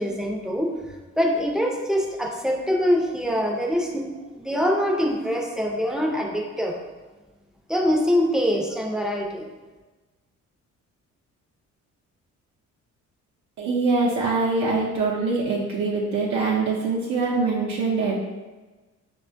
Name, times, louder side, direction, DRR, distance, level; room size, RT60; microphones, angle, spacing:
voice 1, 0.0-4.1 4.3-6.8 7.7-9.5, equal, ahead, 0 dB, 0.5 m, -24 dB
voice 2, 13.6-18.2, right 3 dB, 70° right, -3 dB, 0.6 m, -23 dB
4.7 x 2.2 x 2.5 m, 1.2 s
cardioid pair, 90°, 30 cm